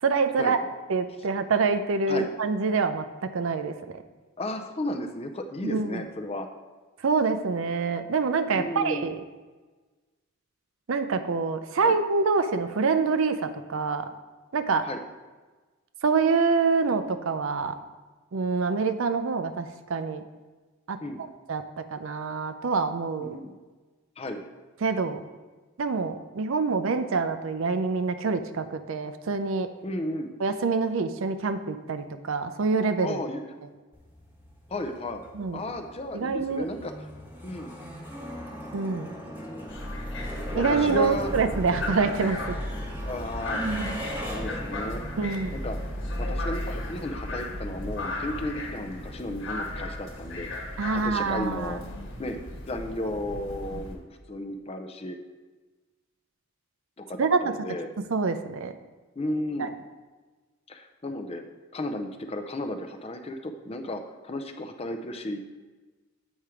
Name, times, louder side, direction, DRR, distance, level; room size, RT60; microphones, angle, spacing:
voice 1, 0.0-0.6 0.9-4.0 5.6-6.0 7.0-9.2 10.9-14.1 14.5-14.9 16.0-17.8 18.3-20.2 20.9-21.0 21.5-23.3 24.8-25.2 25.8-29.7 30.4-33.2 35.3-35.6 36.1-36.7 38.7-39.2 40.5-42.6 45.2-45.6 50.8-51.8 53.7-53.8 57.2-57.4 58.1-58.7 59.6-59.7, right 4 dB, 65° right, 9 dB, 0.5 m, -26 dB
voice 2, 4.4-6.5 8.5-9.1 11.8-11.9 14.9-15.0 21.0-21.2 23.2-23.6 24.2-24.5 29.8-30.3 33.0-33.5 34.7-35.2 35.5-37.1 37.4-37.7 39.2-39.7 40.5-41.3 43.0-43.6 44.2-45.0 45.5-45.8 46.2-50.5 50.9-51.8 52.2-52.4 52.6-54.0 54.3-55.2 57.0-57.9 59.2-59.7 60.7-61.4 61.7-65.4, left 1 dB, 25° left, 6 dB, 0.5 m, -34 dB
sound 1, 33.9-53.2, equal, 10° right, 1.1 m, -41 dB
sound 2, 39.7-53.9, left 1 dB, 55° left, 1.2 m, -35 dB
Sigh, 43.3-44.0, right 3 dB, 80° right, 1.3 m, -32 dB
8.2 x 4.4 x 4.9 m, 1.3 s
head